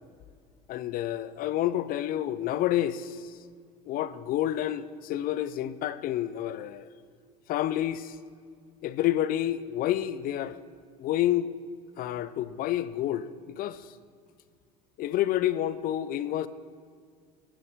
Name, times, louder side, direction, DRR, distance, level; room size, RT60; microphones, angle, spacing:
voice 1, 0.7-3.2 3.9-6.8 7.5-8.1 8.8-10.6 11.0-11.5 12.0-13.3 13.6-13.8 15.0-16.5, left 12 dB, 50° left, 0.4 m, -29 dB
13.5 x 5.5 x 3.5 m
hypercardioid pair, 80°, 19 cm